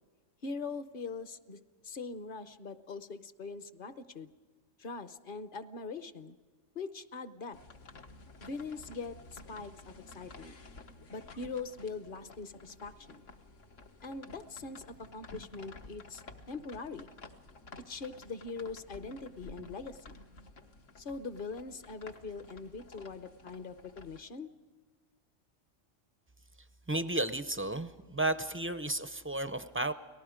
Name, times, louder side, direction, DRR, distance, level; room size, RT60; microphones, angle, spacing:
voice 1, 0.4-4.3 4.8-6.4 6.7-7.6 8.4-10.6 11.1-13.2 14.0-17.1 17.9-20.2 21.0-24.5, left 4 dB, 50° left, 12 dB, 0.9 m, -42 dB
sound 1, 7.5-24.2, left 3 dB, 80° left, 1.7 m, -53 dB
voice 2, 26.9-29.9, right 2 dB, 20° right, 11 dB, 0.4 m, -33 dB
30.0 x 19.0 x 5.0 m, 1.5 s
omnidirectional pair, 1.3 m